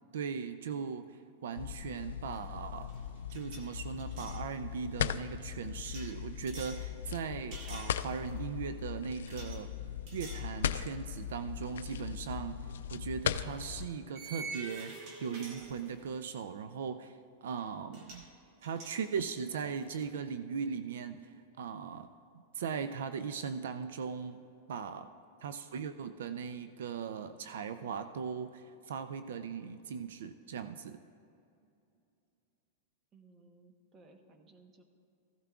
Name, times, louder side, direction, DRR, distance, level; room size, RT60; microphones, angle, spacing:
voice 1, 0.1-2.9 3.3-9.7 10.1-12.6 12.9-18.3 18.6-21.3 21.6-22.1 22.5-24.4 24.7-25.1 25.4-31.0, right 6 dB, 80° right, 11 dB, 0.4 m, -39 dB
sound 1, 1.6-13.9, left 9 dB, 85° left, 0.3 m, -39 dB
sound 2, 2.3-2.6 2.8-4.4 5.8-6.9 7.5-8.4 9.3-9.6 10.1-10.5 11.0-11.1 12.7-12.8 14.2-16.2 17.6-17.7 17.9-18.3 18.6-20.1, right 3 dB, 50° right, 1.7 m, -48 dB
voice 2, 33.1-34.8, right 3 dB, 25° right, 5 dB, 1.0 m, -60 dB
15.0 x 12.0 x 2.4 m, 2.6 s
supercardioid pair, 140°, 0 cm